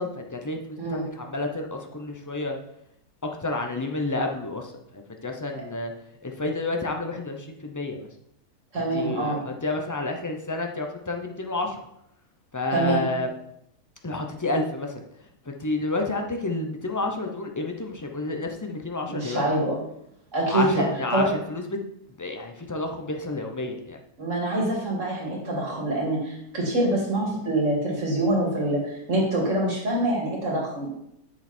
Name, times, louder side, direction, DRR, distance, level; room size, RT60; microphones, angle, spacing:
voice 1, 0.0-2.6 3.2-5.9 6.2-8.1 8.7-11.8 12.5-13.3 14.0-15.0 15.5-19.5 20.5-21.8 22.2-24.0, left 2 dB, 20° left, 3 dB, 0.4 m, -30 dB
voice 2, 8.7-9.4 12.7-13.0 19.1-19.7 20.3-20.8 21.1-21.3 24.2-30.9, right 1 dB, 55° right, -2 dB, 2.8 m, -25 dB
7.7 x 6.7 x 4.4 m, 0.78 s
omnidirectional pair, 1.6 m